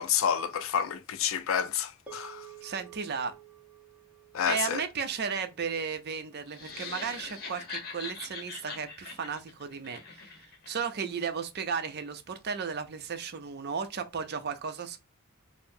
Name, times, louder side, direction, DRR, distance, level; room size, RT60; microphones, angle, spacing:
voice 1, 0.0-2.5 4.3-4.8, left 8 dB, 65° left, 0.4 m, -29 dB
sound 1, 2.1-6.6, right 10 dB, 5° right, 0.8 m, -52 dB
voice 2, 2.6-3.3 4.5-15.0, right 6 dB, 50° right, 0.5 m, -34 dB
sound 2, 6.5-10.7, left 4 dB, 45° left, 1.0 m, -42 dB
4.4 x 2.0 x 2.6 m
head